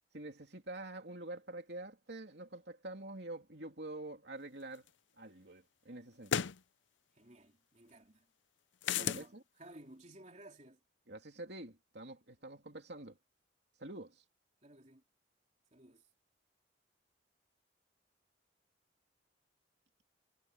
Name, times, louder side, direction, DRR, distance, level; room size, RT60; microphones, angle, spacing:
voice 1, 0.1-4.8 5.2-6.4 9.0-9.2 11.1-13.2 13.8-14.2, right 2 dB, 60° right, 3.2 m, -47 dB
sound 1, 4.9-5.0 6.3-6.6 8.8-9.3, left 8 dB, 75° left, 0.6 m, -33 dB
voice 2, 7.1-8.3 8.9-10.8 14.6-15.0 15.7-16.1, right 1 dB, 35° right, 3.5 m, -56 dB
head